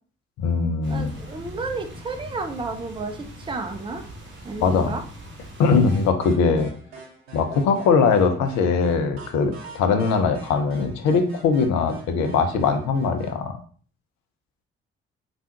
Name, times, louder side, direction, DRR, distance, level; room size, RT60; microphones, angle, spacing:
voice 1, 0.4-1.1 4.6-4.9 5.6-6.7 7.3-13.6, left 5 dB, 65° left, 6 dB, 0.6 m, -21 dB
sound 1, 0.8-6.1, equal, 40° right, 0.9 m, -41 dB
voice 2, 0.9-3.2 3.5-4.0 4.4-5.0, right 3 dB, 15° right, 5 dB, 0.5 m, -31 dB
sound 2, 5.9-13.4, right 4 dB, 80° right, 0.6 m, -44 dB
3.4 x 2.4 x 2.8 m, 0.43 s
hypercardioid pair, 40°, 30 cm